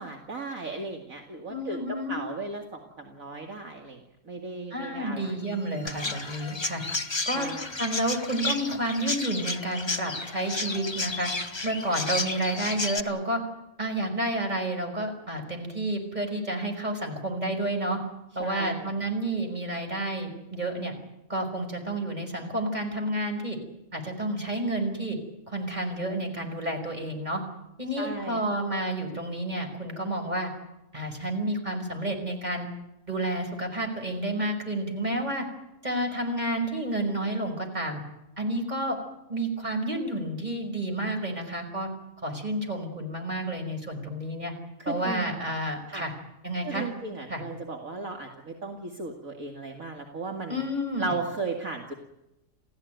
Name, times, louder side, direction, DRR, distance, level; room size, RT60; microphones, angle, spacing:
voice 1, 0.0-5.4 5.8-6.0 7.3-7.7 18.4-18.9 28.0-28.4 44.8-45.4 45.9-46.0 46.6-50.6 51.0-51.9, right 3 dB, 55° right, 3 dB, 2.6 m, -36 dB
voice 2, 1.5-2.2 4.7-6.8 7.3-7.5 7.8-11.3 11.6-13.4 13.8-18.0 18.4-20.9 21.3-23.6 23.9-25.2 25.5-27.4 27.8-30.5 30.9-32.7 33.1-35.5 35.8-38.0 38.4-39.0 39.3-41.9 42.2-44.5 44.9-46.1 46.4-46.9 47.3-47.4 50.5-51.1, right 1 dB, 25° right, 4 dB, 5.5 m, -30 dB
sound 1, 5.4-11.2, equal, 75° right, 8.0 m, -52 dB
Chirp tweet, 5.9-13.0, left 3 dB, 20° left, 1.0 m, -32 dB
28.5 x 16.0 x 9.3 m, 0.91 s
omnidirectional pair, 1.7 m